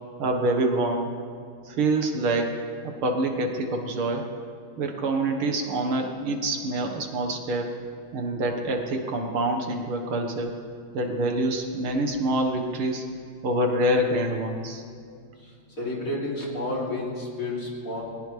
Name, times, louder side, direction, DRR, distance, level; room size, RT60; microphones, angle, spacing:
voice 1, 0.2-1.1 1.7-4.3 4.8-7.7 8.1-10.6 10.9-13.1 13.4-14.8, right 1 dB, 75° right, 3 dB, 2.3 m, -26 dB
voice 2, 15.8-18.0, left 2 dB, 40° left, -4 dB, 3.5 m, -30 dB
22.0 x 19.0 x 3.3 m, 2.3 s
omnidirectional pair, 2.4 m